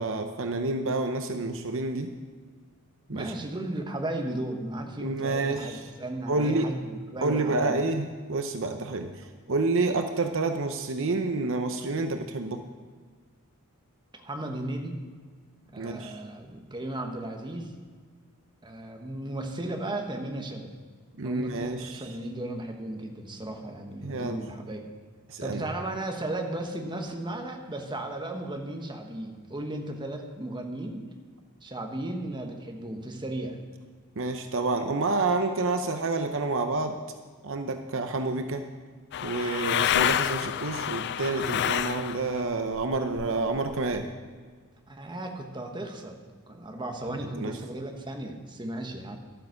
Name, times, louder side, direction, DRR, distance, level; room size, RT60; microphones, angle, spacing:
voice 1, 0.0-2.1 3.1-3.3 5.0-5.8 6.3-6.8 7.2-12.6 15.8-16.2 21.2-22.0 24.0-24.5 25.3-25.6 34.2-37.0 37.4-38.7 39.2-44.1 47.1-47.6, right 3 dB, 60° right, 7 dB, 0.8 m, -29 dB
voice 2, 3.1-7.7 14.2-15.0 15.7-17.7 18.6-20.8 21.2-24.8 25.4-31.0 31.6-33.6 44.9-46.2 46.5-49.2, right 1 dB, 20° right, 3 dB, 1.2 m, -35 dB
sound 1, 39.1-42.4 42.7-44.0, left 10 dB, 50° left, 0.3 m, -28 dB
12.5 x 8.9 x 6.5 m, 1.5 s
head